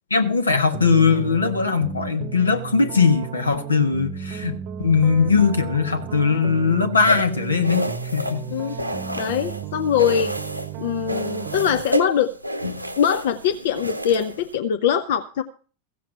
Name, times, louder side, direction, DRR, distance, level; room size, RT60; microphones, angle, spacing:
voice 1, 0.1-7.9 8.1-8.4, left 5 dB, 75° left, 1.4 m, -20 dB
sound 1, 0.7-11.8, right 8 dB, 40° right, 0.9 m, -34 dB
sound 2, 7.1-9.6 10.0-10.7 11.1-14.5, equal, 90° right, 1.0 m, -29 dB
voice 2, 9.1-10.3 10.8-12.3 13.0-15.4, left 8 dB, 55° left, 0.7 m, -22 dB
15.5 x 7.6 x 5.9 m
figure-of-eight pair, 90°, 0 cm